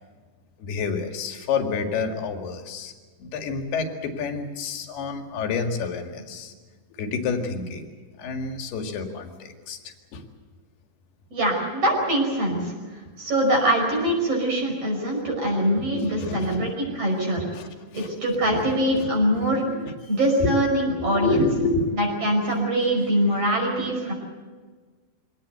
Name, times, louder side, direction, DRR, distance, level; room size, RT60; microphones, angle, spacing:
voice 1, 0.6-2.9 3.2-6.5 7.0-7.9 8.2-9.8 10.1-10.2 15.7-16.8 17.4-18.1 18.4-19.5 19.9-20.0 20.4-21.9 23.8-23.9, left 4 dB, 75° left, 4 dB, 4.0 m, -29 dB
voice 2, 11.3-12.7 13.2-17.4 17.9-19.6 20.1-21.5 22.2-24.1, right 1 dB, 35° right, 0 dB, 6.3 m, -23 dB
24.5 x 18.5 x 8.0 m, 1.4 s
omnidirectional pair, 4.7 m